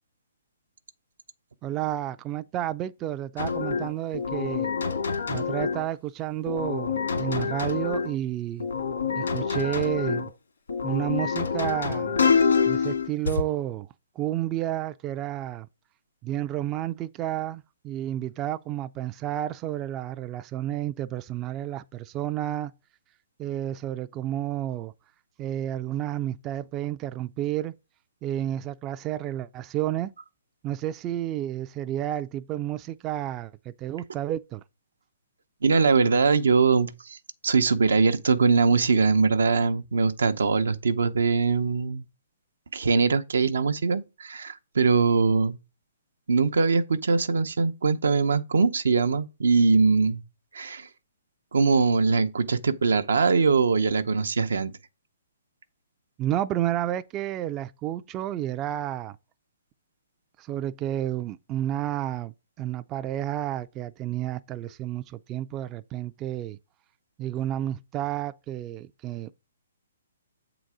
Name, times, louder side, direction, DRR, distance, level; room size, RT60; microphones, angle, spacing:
voice 1, 1.6-4.7 5.3-8.7 9.2-10.3 10.8-12.2 12.7-13.9 14.2-15.7 16.2-22.7 23.4-24.9 25.4-27.7 28.2-30.1 30.6-34.6 56.2-59.2 60.4-62.3 62.6-66.6 67.2-69.3, right 12 dB, 25° right, 0.3 m, -31 dB
sound 1, 3.4-5.9 6.5-8.1 8.6-10.3 10.7-13.4, left 5 dB, 90° left, 2.1 m, -26 dB
voice 2, 35.6-37.2 37.4-42.0 42.7-45.6 46.3-50.2 50.5-50.9 51.5-54.7, right 4 dB, 85° right, 0.7 m, -22 dB
7.4 x 3.9 x 4.8 m
hypercardioid pair, 150°, 0 cm